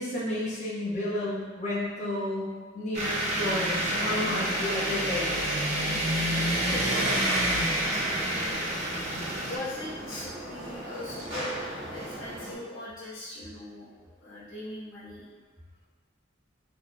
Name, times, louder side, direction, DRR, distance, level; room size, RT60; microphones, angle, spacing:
voice 1, 0.0-2.5 2.7-5.4, left 1 dB, 35° left, -11 dB, 1.1 m, -31 dB
sound 1, 2.9-9.6, right 1 dB, 35° right, 0.6 m, -28 dB
voice 2, 4.5-4.9 6.6-7.3 7.5-8.7 9.5-15.2, left 1 dB, 75° left, -10 dB, 1.0 m, -40 dB
sound 2, 7.0-12.5, right 1 dB, 65° right, 1.2 m, -39 dB
4.0 x 3.1 x 2.2 m, 1.5 s
head